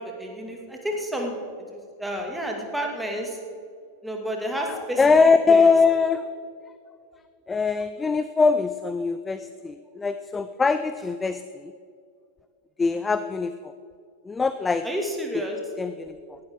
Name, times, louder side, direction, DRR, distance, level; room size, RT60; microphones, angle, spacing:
voice 1, 0.0-3.4 4.0-5.0 5.5-5.7 14.8-15.6, equal, 5° right, 1 dB, 2.3 m, -30 dB
voice 2, 4.7-6.2 7.5-11.7 12.8-13.7 14.2-14.9 15.8-16.4, left 4 dB, 15° left, 11 dB, 0.4 m, -22 dB
18.0 x 12.0 x 3.8 m, 2.3 s
figure-of-eight pair, 90°, 0 cm